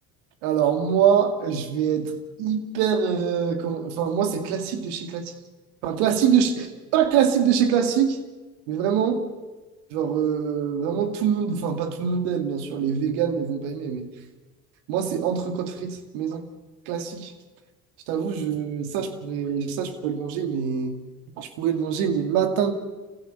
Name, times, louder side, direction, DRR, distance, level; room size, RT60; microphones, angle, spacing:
voice 1, 0.4-2.1 2.4-5.3 5.8-8.2 8.7-9.2 9.9-14.1 14.9-16.4 16.9-17.3 18.1-21.0 21.4-22.7, right 8 dB, 70° right, 7 dB, 2.5 m, -24 dB
27.0 x 16.0 x 6.9 m, 1.2 s
hypercardioid pair, 70°, 45 cm